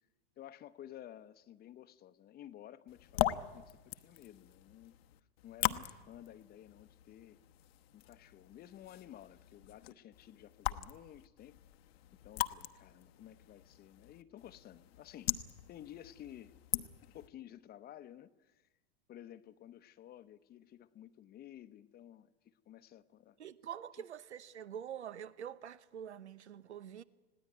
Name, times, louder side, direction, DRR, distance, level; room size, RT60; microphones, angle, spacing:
voice 1, 0.4-4.9 5.4-7.4 7.9-11.6 12.1-18.7 19.1-23.4, left 11 dB, 30° left, 0.9 m, -54 dB
sound 1, 2.9-17.3, left 14 dB, 65° left, 1.1 m, -41 dB
voice 2, 23.4-27.0, right 9 dB, 90° right, 0.9 m, -46 dB
20.0 x 16.5 x 9.5 m
hypercardioid pair, 110°, 33 cm